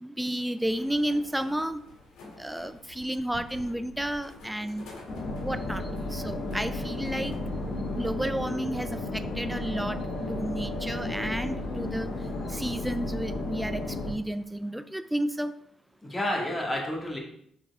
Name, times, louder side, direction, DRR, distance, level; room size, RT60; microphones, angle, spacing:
voice 1, 0.0-1.8 2.4-4.9 5.4-5.8 6.1-7.3 7.9-10.0 10.3-12.1 12.5-15.5, right 1 dB, 5° right, 11 dB, 0.4 m, -31 dB
sound 1, 0.7-7.4, left 2 dB, 85° left, 2.0 m, -49 dB
sound 2, 5.1-14.1, left 2 dB, 55° left, 2.1 m, -33 dB
voice 2, 16.0-17.2, left 1 dB, 15° left, -1 dB, 2.2 m, -31 dB
6.0 x 4.8 x 4.8 m, 0.68 s
cardioid pair, 90°, 0 cm